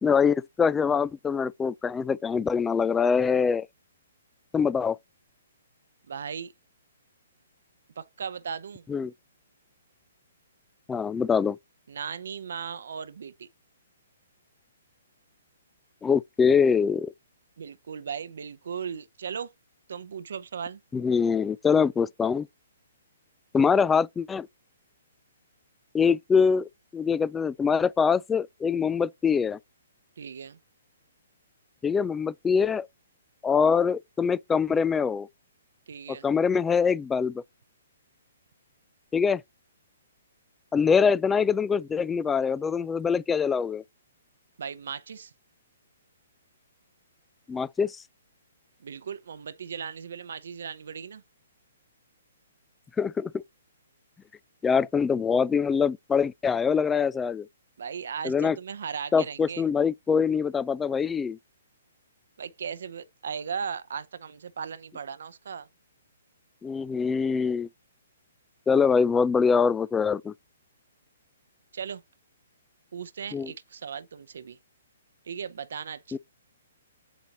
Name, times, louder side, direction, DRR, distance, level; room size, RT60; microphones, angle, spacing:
voice 1, 0.0-3.7 4.5-5.0 8.9-9.1 10.9-11.6 16.0-17.1 20.9-22.5 23.5-24.5 25.9-29.6 31.8-32.9 33.4-35.3 36.2-37.4 39.1-39.4 40.7-43.8 47.5-48.0 53.0-53.3 54.6-57.5 58.2-58.6 59.1-61.4 66.6-67.7 68.7-70.3 73.3-73.5 76.1-76.2, left 6 dB, 10° left, 0.3 m, -24 dB
voice 2, 6.1-6.5 8.0-8.9 11.9-13.5 17.6-19.5 19.9-20.8 30.2-30.6 35.9-36.3 44.6-45.3 48.8-51.2 57.8-59.7 62.4-65.7 71.7-72.0 72.9-74.6 75.2-76.2, right 7 dB, 70° right, 0.7 m, -37 dB
8.2 x 4.0 x 2.9 m
hypercardioid pair, 135°, 0 cm